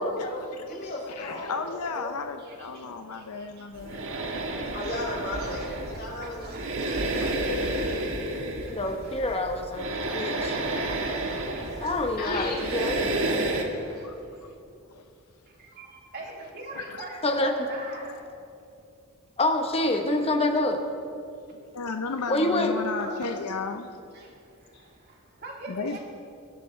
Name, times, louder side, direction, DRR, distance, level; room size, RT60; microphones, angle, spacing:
voice 1, 0.0-1.5 1.9-2.1 4.7-7.1 11.3-11.8 12.2-12.6, left 2 dB, 45° left, 4.2 m, -35 dB
voice 2, 1.1-4.1 7.1-7.4 14.0-14.5 14.9-15.0 16.7-17.0 21.5-23.9 25.7-26.0, left 4 dB, 90° left, 0.7 m, -34 dB
voice 3, 2.4-4.4 5.4-5.7 6.1-8.3 8.8-9.4 11.0-12.0 12.3-14.6 15.5-18.5 23.0-23.4 24.1-26.0, right 2 dB, 45° right, 2.6 m, -44 dB
sound 1, 3.7-13.6, right 2 dB, 65° right, 1.4 m, -31 dB
voice 4, 8.7-10.6 11.8-13.1 17.2-17.5 19.4-20.8 22.3-22.7, left 2 dB, 25° left, 1.1 m, -26 dB
23.0 x 11.5 x 3.3 m
head